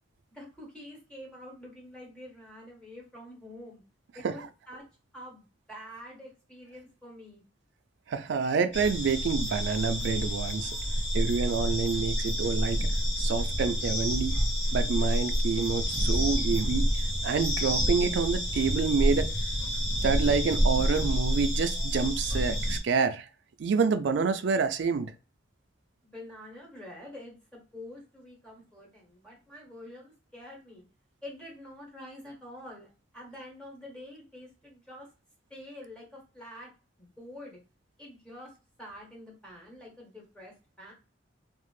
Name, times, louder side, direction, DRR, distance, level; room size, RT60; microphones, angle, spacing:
voice 1, 0.3-3.8 4.1-4.8 5.1-7.4 26.0-30.8 31.2-35.1 35.5-36.7 37.0-37.6 38.0-40.9, left 1 dB, 5° left, 1.1 m, -47 dB
voice 2, 8.1-10.8 11.1-12.9 13.2-14.4 14.7-16.9 17.2-19.3 20.0-23.3 23.6-25.1, right 5 dB, 65° right, 0.3 m, -28 dB
sound 1, 8.7-22.8, equal, 65° left, 1.1 m, -28 dB
2.5 x 2.0 x 3.1 m
head